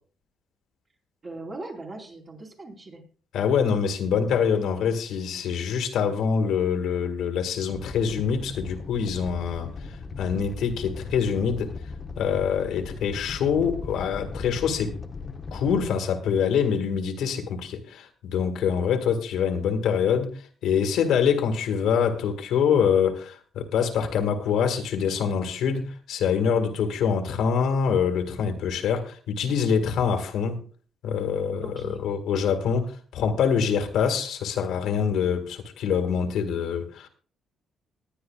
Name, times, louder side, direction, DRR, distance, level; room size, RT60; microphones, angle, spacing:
voice 1, 1.2-3.0 4.1-4.4 5.3-5.5 31.6-32.0, right 2 dB, 40° right, 0 dB, 4.4 m, -40 dB
voice 2, 3.3-9.7 10.2-11.7 12.2-15.0 15.5-20.3 20.6-30.6 31.0-37.1, left 7 dB, 80° left, 5 dB, 1.9 m, -25 dB
Animal, 7.7-15.9, left 4 dB, 40° left, 0.9 m, -38 dB
21.0 x 9.7 x 2.4 m, 0.41 s
cardioid pair, 90°, 0 cm